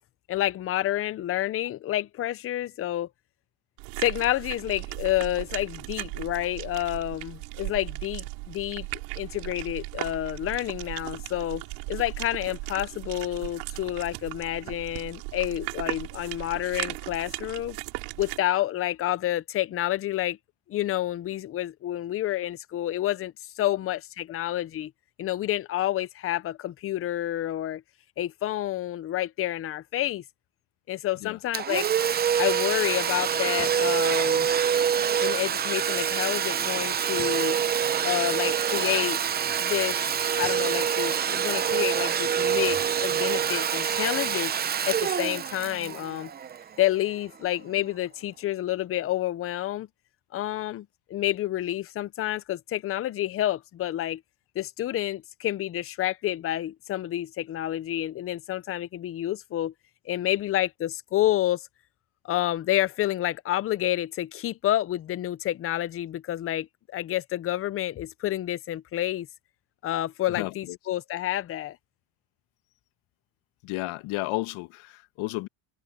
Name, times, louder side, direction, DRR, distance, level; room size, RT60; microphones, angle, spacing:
voice 1, 0.3-3.1 4.0-8.9 9.2-17.8 18.2-20.4 20.7-24.9 25.2-27.8 28.2-30.2 30.9-31.9 32.4-34.5 35.2-37.6 38.0-39.2 39.6-40.0 40.4-44.6 44.8-46.3 46.8-49.9 50.3-54.2 54.6-59.7 60.1-61.7 62.2-66.7 66.9-69.3 69.8-71.8, left 14 dB, 30° left, 0.5 m, -29 dB
sound 1, 3.8-18.4, right 27 dB, 90° right, 5.0 m, -37 dB
Domestic sounds home sounds, 31.5-47.0, right 8 dB, 20° right, 0.5 m, -26 dB
voice 2, 70.3-70.8 73.6-75.5, left 20 dB, 75° left, 1.6 m, -32 dB
cardioid pair, 145°, 48 cm